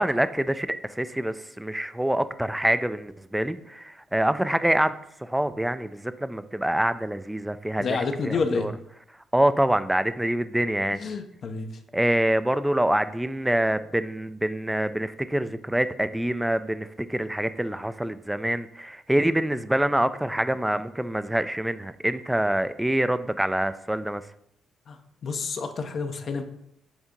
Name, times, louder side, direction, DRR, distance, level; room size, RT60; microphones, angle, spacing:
voice 1, 0.0-4.9 5.2-8.7 9.3-11.0 11.9-24.2, right 1 dB, 5° right, 12 dB, 0.4 m, -25 dB
voice 2, 7.8-8.7 10.9-11.8 24.9-25.0 25.2-26.4, left 4 dB, 55° left, 7 dB, 0.7 m, -29 dB
7.2 x 2.7 x 5.1 m, 0.74 s
cardioid pair, 90°, 0 cm